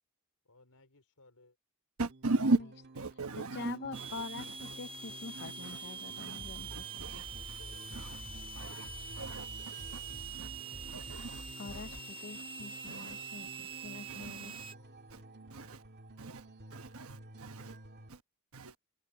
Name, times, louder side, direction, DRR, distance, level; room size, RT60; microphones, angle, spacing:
voice 1, 0.4-1.6 7.3-8.6 12.8-13.3, left 2 dB, 80° left, 4.5 m, -63 dB
voice 2, 2.0-2.6 2.9-4.7 5.4-5.8 6.2-6.4 6.7-7.6 7.9-8.2 8.5-8.9 9.2-10.0 10.4-10.5 10.9-11.4 11.7-11.8 12.8-13.1 14.1-14.7 15.1-15.2 15.5-15.8 16.2-16.4 16.7-17.8 18.1-18.2 18.5-18.7, right 2 dB, 70° right, 1.2 m, -37 dB
sound 1, 2.1-18.1, right 2 dB, 50° right, 2.1 m, -53 dB
voice 3, 3.5-7.2 11.6-13.5 13.8-14.5, left 4 dB, 50° left, 0.6 m, -45 dB
sound 2, 3.9-14.7, right 5 dB, 25° right, 1.2 m, -45 dB
Bass drum, 6.4-12.0, left 1 dB, 30° left, 1.4 m, -49 dB
head